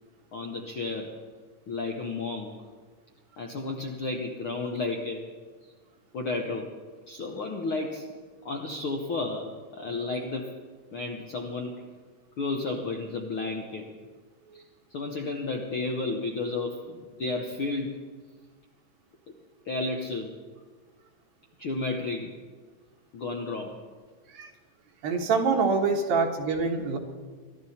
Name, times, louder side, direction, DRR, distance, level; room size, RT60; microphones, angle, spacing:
voice 1, 0.3-1.1 1.7-2.5 3.4-5.2 6.1-6.7 7.1-8.1 8.4-10.6 10.9-11.9 12.4-13.8 14.5-14.6 14.9-18.0 19.6-20.3 21.6-22.3 23.1-23.8, left 3 dB, 75° left, 2 dB, 1.2 m, -32 dB
voice 2, 25.0-27.0, right 4 dB, 90° right, 2 dB, 3.3 m, -25 dB
23.5 x 13.0 x 4.3 m, 1.5 s
omnidirectional pair, 4.0 m